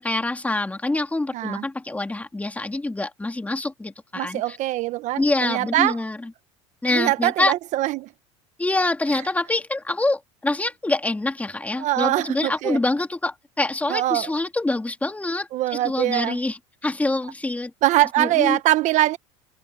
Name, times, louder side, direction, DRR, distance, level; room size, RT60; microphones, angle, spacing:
voice 1, 0.0-4.6 5.2-6.3 6.8-7.5 8.6-17.7 18.2-18.6, left 2 dB, 10° left, 2.8 m, -25 dB
voice 2, 1.3-1.6 4.2-5.9 6.9-8.1 11.8-12.8 13.9-14.3 15.5-16.4 17.8-19.2, right 15 dB, 55° right, 1.2 m, -22 dB
supercardioid pair, 100°, 14 cm